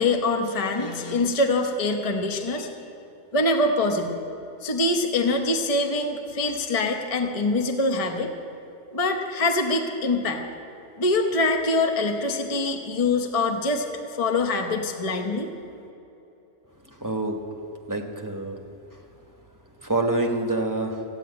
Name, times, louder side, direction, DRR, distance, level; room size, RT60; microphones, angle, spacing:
voice 1, 0.0-2.7 3.3-4.2 4.6-8.3 8.9-10.4 11.0-13.9 14.2-15.5, left 2 dB, 30° left, 4 dB, 0.9 m, -24 dB
voice 2, 17.0-17.5 17.9-18.6 19.8-21.0, right 2 dB, 15° right, 2 dB, 1.1 m, -26 dB
14.0 x 9.0 x 9.4 m, 3.0 s
omnidirectional pair, 1.3 m